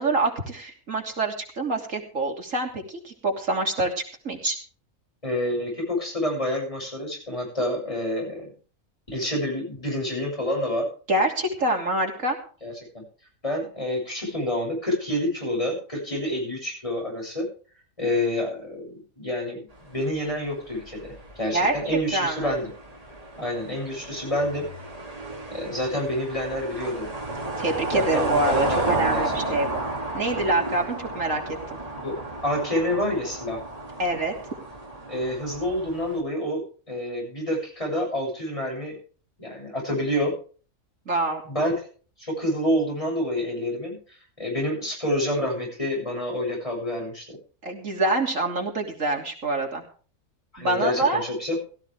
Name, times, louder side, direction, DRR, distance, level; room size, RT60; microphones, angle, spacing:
voice 1, 0.0-4.6 11.1-12.4 21.5-21.7 22.1-22.5 27.6-29.8 30.1-31.4 31.7-31.8 34.0-34.3 41.1-41.4 47.6-49.8 50.6-51.2, right 2 dB, 70° right, 1 dB, 3.4 m, -26 dB
voice 2, 5.2-8.5 9.1-10.9 12.6-13.0 13.4-17.5 18.0-22.7 23.4-24.7 25.5-27.1 27.9-29.6 32.0-32.2 32.4-33.6 35.1-36.6 36.9-39.0 39.4-40.3 41.5-41.7 42.2-44.0 44.4-47.4 50.5-51.6, left 1 dB, 25° left, -1 dB, 7.9 m, -28 dB
sound 1, 19.8-36.2, right 2 dB, 25° right, 2.8 m, -33 dB
17.0 x 13.5 x 3.5 m, 0.40 s
omnidirectional pair, 1.4 m